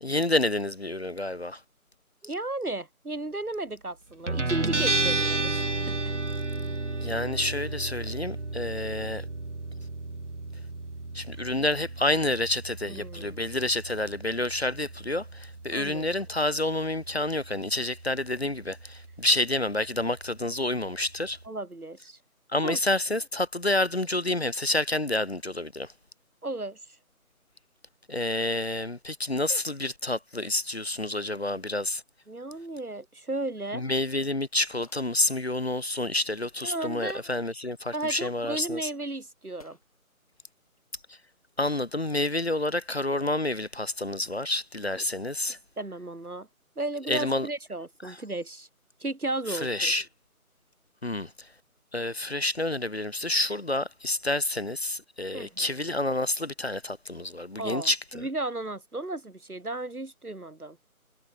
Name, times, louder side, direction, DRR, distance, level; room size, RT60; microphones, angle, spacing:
voice 1, 0.0-1.6 7.0-9.2 11.1-21.4 22.5-25.9 28.1-32.0 33.7-38.9 41.6-45.6 47.1-47.5 48.0-48.2 49.5-50.0 51.0-51.3 51.9-58.3, left 2 dB, 45° left, 0.8 m, -29 dB
voice 2, 2.2-6.1 12.9-13.4 15.7-16.2 21.4-22.2 22.6-22.8 26.4-26.8 32.3-33.8 36.6-37.2 37.9-39.8 44.9-45.0 45.8-46.5 46.8-48.7 49.0-49.9 55.3-55.7 57.6-60.8, right 2 dB, 80° right, 3.4 m, -34 dB
Guitar, 4.3-21.5, right 2 dB, 55° right, 2.4 m, -33 dB
sound 1, 33.2-33.5 33.8-34.2 34.5-36.0 37.1-37.4 38.5-38.6 39.6-39.9 41.7-42.0, left 3 dB, 25° left, 3.0 m, -57 dB
figure-of-eight pair, 170°, 43 cm